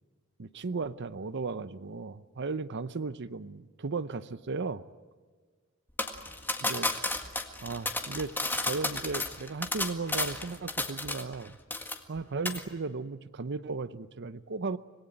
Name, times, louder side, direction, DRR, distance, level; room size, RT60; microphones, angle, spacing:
voice 1, 0.4-4.8 6.6-6.9 7.6-8.3 8.6-11.5 12.1-14.8, right 4 dB, 55° right, 14 dB, 0.7 m, -35 dB
sound 1, 6.0-11.4 11.7-12.2 12.5-12.6, left 2 dB, 10° left, 1.8 m, -32 dB
26.5 x 20.0 x 9.2 m, 1.5 s
head